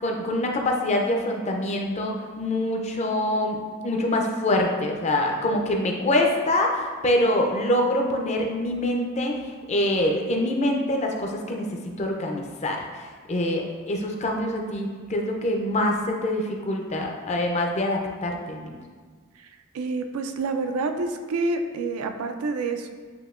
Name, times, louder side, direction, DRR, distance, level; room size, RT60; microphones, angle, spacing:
voice 1, 0.0-9.3 9.7-11.7 12.0-12.8 13.3-18.7, left 1 dB, 30° left, 1 dB, 0.5 m, -25 dB
voice 2, 19.7-22.9, right 3 dB, 85° right, 6 dB, 0.4 m, -28 dB
7.7 x 2.7 x 2.5 m, 1.5 s
head